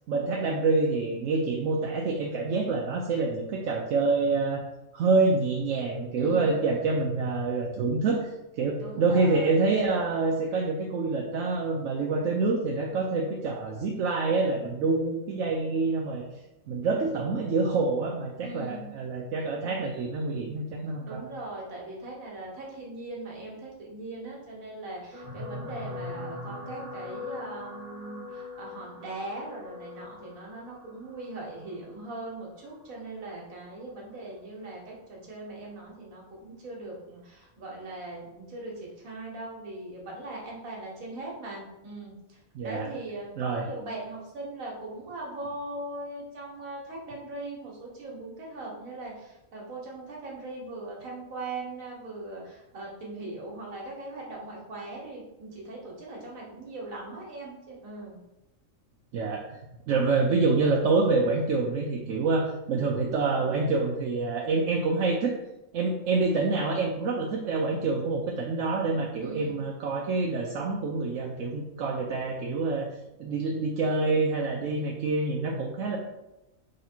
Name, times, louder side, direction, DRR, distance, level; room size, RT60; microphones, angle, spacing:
voice 1, 0.1-4.6 4.9-16.2 16.7-21.2 42.5-42.9 43.4-43.6 59.1-59.4 59.9-65.4 65.7-72.9 73.2-76.0, right 3 dB, 75° right, 0 dB, 0.9 m, -27 dB
voice 2, 6.2-6.7 8.8-10.1 18.4-18.9 21.0-42.4 42.6-58.2 69.2-69.7, right 2 dB, 90° right, -2 dB, 1.6 m, -40 dB
sound 1, 25.1-33.6 34.3-34.6 34.8-34.9, left 3 dB, 35° right, 1.3 m, -42 dB
3.7 x 3.2 x 4.3 m, 0.93 s
omnidirectional pair, 1.4 m